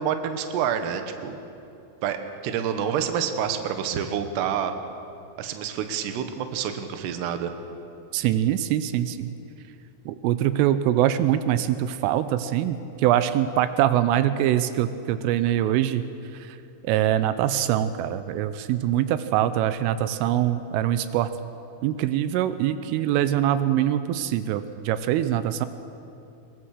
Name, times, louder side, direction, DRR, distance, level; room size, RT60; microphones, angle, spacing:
voice 1, 0.0-1.4 2.0-4.7 5.4-7.5, right 8 dB, 70° right, 7 dB, 2.9 m, -28 dB
voice 2, 8.1-9.3 10.1-16.1 16.5-16.6 16.8-21.3 21.8-25.7, right 12 dB, 90° right, 12 dB, 3.3 m, -23 dB
22.5 x 21.5 x 6.5 m, 2.7 s
omnidirectional pair, 5.7 m